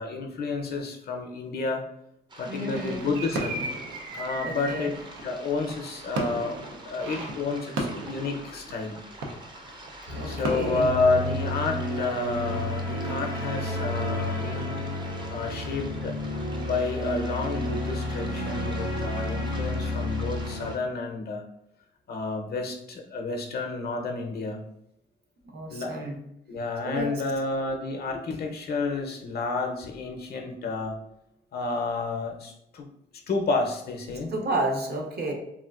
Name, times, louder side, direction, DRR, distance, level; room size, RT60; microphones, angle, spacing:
voice 1, 0.0-1.8 2.4-3.7 4.2-4.9 5.2-6.6 6.8-9.0 10.2-14.8 15.3-16.1 16.6-21.4 22.1-24.6 25.7-25.9 26.5-31.0 31.5-32.8 33.3-34.3, left 3 dB, 50° left, 3 dB, 0.5 m, -30 dB
sound 1, 2.3-20.8, right 1 dB, 25° right, 0.5 m, -47 dB
voice 2, 2.5-3.1 4.4-4.9 10.1-10.9 25.5-26.2 26.8-27.1 34.3-35.3, right 2 dB, 55° right, 2 dB, 0.8 m, -31 dB
sound 2, 2.7-12.1 12.5-12.7, right 2 dB, 90° right, 0.5 m, -36 dB
sound 3, 10.1-20.7, left 1 dB, 70° right, 1.2 m, -31 dB
3.6 x 2.4 x 2.3 m, 0.80 s
cardioid pair, 90°, 20 cm